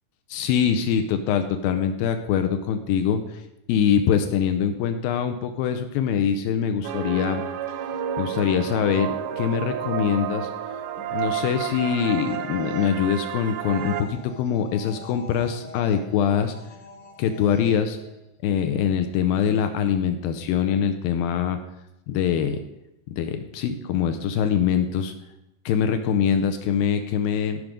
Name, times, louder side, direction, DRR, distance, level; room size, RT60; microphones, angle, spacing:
voice 1, 0.3-3.4 3.7-7.4 8.2-16.5 17.2-18.0 18.4-21.6 22.1-22.6 23.2-25.1 25.7-27.6, left 8 dB, 85° left, 8 dB, 2.1 m, -23 dB
sound 1, 6.8-14.0, right 9 dB, 80° right, 2.9 m, -31 dB
sound 2, 11.0-18.4, left 2 dB, 45° left, 1.2 m, -45 dB
15.0 x 6.2 x 5.1 m, 0.88 s
omnidirectional pair, 4.9 m